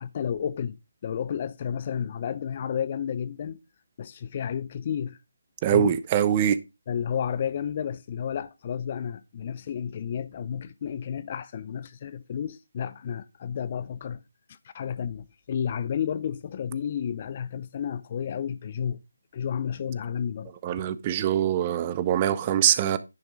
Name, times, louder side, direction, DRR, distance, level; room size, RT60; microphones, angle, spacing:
voice 1, 0.0-3.6 4.0-5.2 5.7-6.0 6.9-14.2 14.6-19.0 19.3-20.5, left 8 dB, 30° left, 0.5 m, -31 dB
voice 2, 5.6-6.6 20.6-23.0, right 10 dB, 20° right, 0.5 m, -23 dB
10.5 x 6.0 x 3.5 m
figure-of-eight pair, 160°, 0 cm